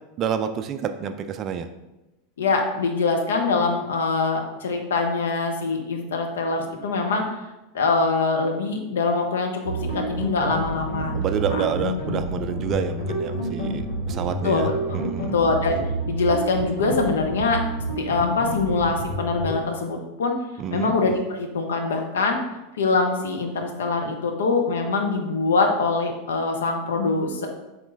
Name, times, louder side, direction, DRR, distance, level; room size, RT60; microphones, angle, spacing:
voice 1, 0.2-1.7 11.1-14.7 14.9-15.3 20.6-20.9, right 8 dB, 40° right, 9 dB, 0.3 m, -28 dB
voice 2, 2.4-7.2 7.7-11.2 11.5-11.7 14.4-14.7 15.3-15.8 16.0-17.6 18.0-20.3 20.7-22.4 22.8-27.5, left 3 dB, 70° left, 3 dB, 0.6 m, -23 dB
sound 1, 9.6-19.6, right 1 dB, 90° left, 1.0 m, -29 dB
3.8 x 3.1 x 3.3 m, 1.0 s
figure-of-eight pair, 85°, 0 cm